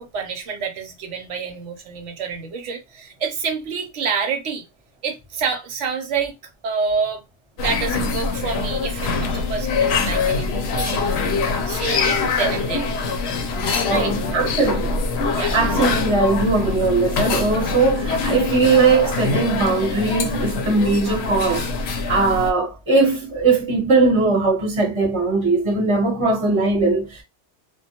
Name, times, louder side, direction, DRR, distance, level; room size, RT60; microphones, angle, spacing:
voice 1, 0.0-4.6 5.0-6.3 6.6-7.2 7.6-11.0 11.7-12.9 13.9-14.1 15.3-15.6, right 5 dB, 80° right, 1.0 m, -27 dB
sound 1, 7.6-22.5, left 4 dB, 65° left, 0.8 m, -24 dB
voice 2, 13.9-15.0 15.5-21.7 22.1-27.2, right 3 dB, 25° right, 0.9 m, -19 dB
2.2 x 2.2 x 2.8 m
omnidirectional pair, 1.2 m